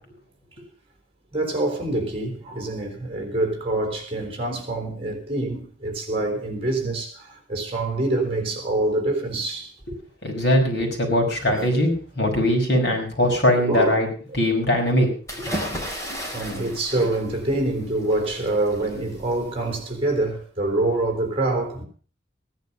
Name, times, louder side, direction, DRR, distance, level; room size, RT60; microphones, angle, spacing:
voice 1, 1.3-9.7 11.5-11.8 13.5-14.0 14.3-14.4 16.3-21.8, right 2 dB, 30° right, 4.0 m, -26 dB
voice 2, 10.2-14.1 14.3-15.1, left 1 dB, 60° left, 5.4 m, -21 dB
sound 1, 15.3-20.1, equal, 15° left, 3.5 m, -35 dB
16.5 x 11.0 x 5.5 m
head